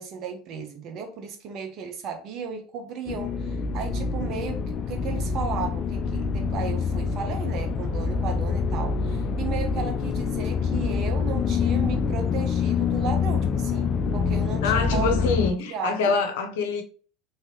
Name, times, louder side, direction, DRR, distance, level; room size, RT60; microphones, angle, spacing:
voice 1, 0.0-15.1 15.6-16.1, right 6 dB, 50° right, 1.0 m, -35 dB
sound 1, 3.1-15.5, left 5 dB, 45° left, 0.4 m, -26 dB
voice 2, 14.6-16.8, left 4 dB, 75° left, 0.7 m, -25 dB
3.1 x 2.9 x 3.0 m
hypercardioid pair, 80°, 0 cm